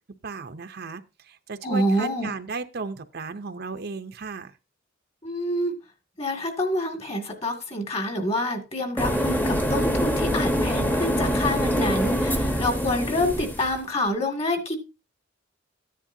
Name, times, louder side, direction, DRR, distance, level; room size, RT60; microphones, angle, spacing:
voice 1, 0.2-4.6, right 4 dB, 55° right, 8 dB, 0.7 m, -35 dB
voice 2, 1.6-2.3 5.2-5.7 6.2-14.8, left 1 dB, 30° left, 5 dB, 2.1 m, -27 dB
sound 1, 9.0-13.7, equal, 10° left, 1.0 m, -24 dB
14.0 x 10.0 x 2.7 m, 0.27 s
head